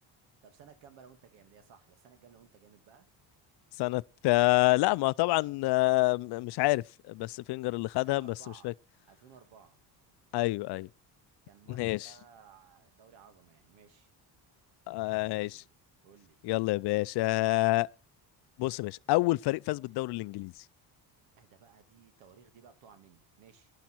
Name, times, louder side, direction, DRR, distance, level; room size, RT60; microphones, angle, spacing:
voice 1, 0.4-3.1 7.9-8.7 9.1-9.8 11.5-14.1 15.0-15.7 16.0-16.4 21.4-23.7, right 7 dB, 90° right, 2.5 m, -57 dB
voice 2, 3.8-8.3 8.6-8.7 10.3-10.9 11.7-12.1 14.9-15.5 16.4-17.9 18.6-20.5, left 20 dB, 65° left, 0.5 m, -27 dB
11.5 x 11.5 x 4.5 m
cardioid pair, 120°, 43 cm